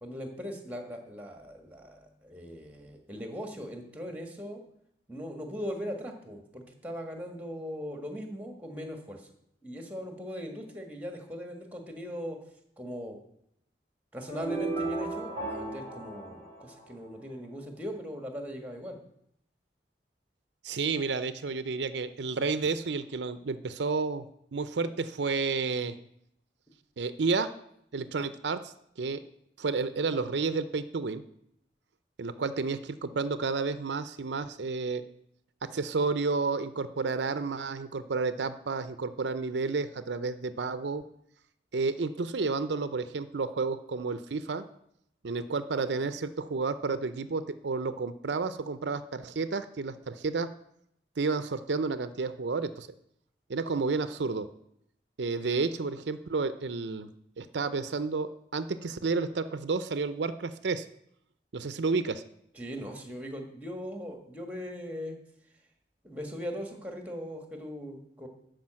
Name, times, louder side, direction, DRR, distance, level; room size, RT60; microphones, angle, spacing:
voice 1, 0.0-4.6 5.1-9.2 9.6-12.4 12.8-13.2 14.1-19.0 62.5-65.2 66.0-68.3, equal, 10° right, 4 dB, 1.6 m, -39 dB
sound 1, 14.3-17.3, right 2 dB, 25° left, 4.2 m, -35 dB
voice 2, 20.6-24.3 24.5-26.0 27.0-27.5 27.9-29.2 29.6-31.2 32.2-35.0 35.6-41.0 41.7-44.6 45.2-50.5 51.2-52.9 53.5-54.5 55.2-57.1 57.4-60.9 61.5-62.2, right 4 dB, 85° right, 12 dB, 0.6 m, -31 dB
12.0 x 5.0 x 7.5 m, 0.74 s
head